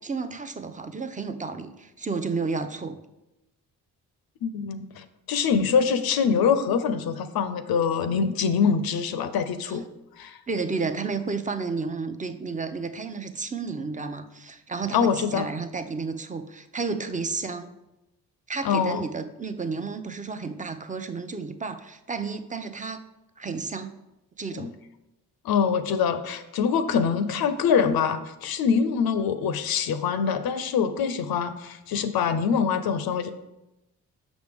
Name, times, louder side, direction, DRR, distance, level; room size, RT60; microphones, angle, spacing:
voice 1, 0.0-3.0 9.7-9.8 10.5-17.7 18.5-23.0 23.4-23.9 24.4-24.7, right 4 dB, 20° right, 9 dB, 0.6 m, -32 dB
voice 2, 4.4-9.9 10.2-10.4 14.9-15.5 18.6-19.0 24.6-24.7 25.4-33.3, left 6 dB, 70° left, 11 dB, 0.6 m, -24 dB
6.1 x 5.1 x 3.5 m, 0.95 s
supercardioid pair, 45°, 38 cm